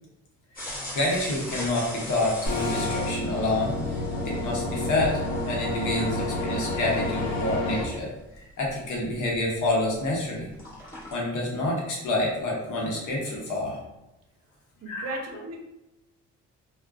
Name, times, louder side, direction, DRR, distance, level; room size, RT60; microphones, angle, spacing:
sound 1, 0.5-10.1 10.4-11.1, left 1 dB, 30° left, 1.0 m, -41 dB
voice 1, 0.9-3.7 4.2-8.1 8.3-10.5 11.1-13.8 14.9-15.2, left 2 dB, 80° left, -3 dB, 0.9 m, -28 dB
sound 2, 2.5-7.8, left 2 dB, 55° left, 0.6 m, -29 dB
voice 2, 14.8-15.6, right 2 dB, 55° right, 2 dB, 0.6 m, -35 dB
2.3 x 2.2 x 2.4 m, 0.96 s
cardioid pair, 90°, 30 cm